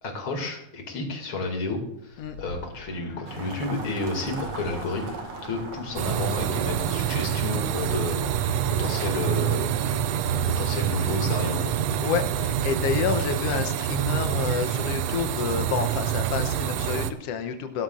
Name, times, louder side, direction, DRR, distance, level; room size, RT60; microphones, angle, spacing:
voice 1, 0.0-5.0 5.4-8.5 8.8-9.7 10.6-11.8, left 2 dB, 40° left, 2 dB, 2.8 m, -31 dB
sound 1, 1.8-11.8, left 6 dB, 65° left, 1.1 m, -47 dB
sound 2, 3.3-10.2, right 5 dB, 65° right, 3.1 m, -40 dB
sound 3, 6.0-17.1, right 9 dB, 80° right, 1.4 m, -26 dB
voice 2, 12.0-17.8, left 7 dB, 80° left, 6 dB, 1.4 m, -29 dB
17.0 x 12.5 x 2.5 m, 0.80 s
omnidirectional pair, 3.8 m